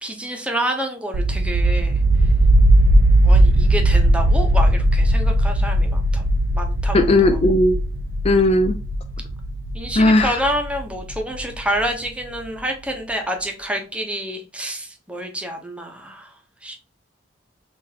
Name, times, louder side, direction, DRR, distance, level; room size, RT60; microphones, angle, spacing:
voice 1, 0.0-1.9 3.2-6.2 6.5-7.4 9.7-16.3 16.6-16.8, right 1 dB, 5° right, 3 dB, 0.7 m, -28 dB
sound 1, 1.1-11.8, right 1 dB, 70° right, 0.4 m, -18 dB
voice 2, 6.9-7.8 8.2-8.8 10.0-10.3, left 1 dB, 30° left, 7 dB, 0.3 m, -16 dB
5.7 x 2.5 x 2.7 m, 0.33 s
head